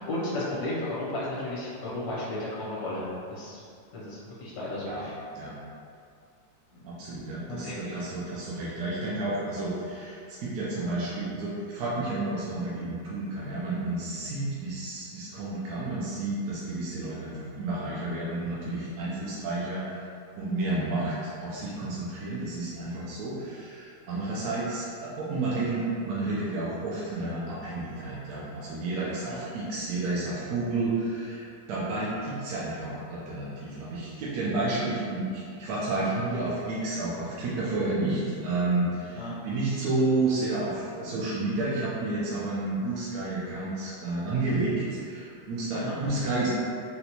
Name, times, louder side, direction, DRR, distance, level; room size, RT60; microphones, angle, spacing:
voice 1, 0.0-3.6 3.9-5.2 6.7-6.9 7.5-7.8 20.8-20.9 29.2-29.4 39.1-39.3 45.7-46.0, left 1 dB, 75° left, -8 dB, 1.3 m, -34 dB
voice 2, 6.8-20.0 20.4-46.5, right 2 dB, 70° right, -8 dB, 1.1 m, -31 dB
4.0 x 2.2 x 2.8 m, 2.4 s
omnidirectional pair, 1.9 m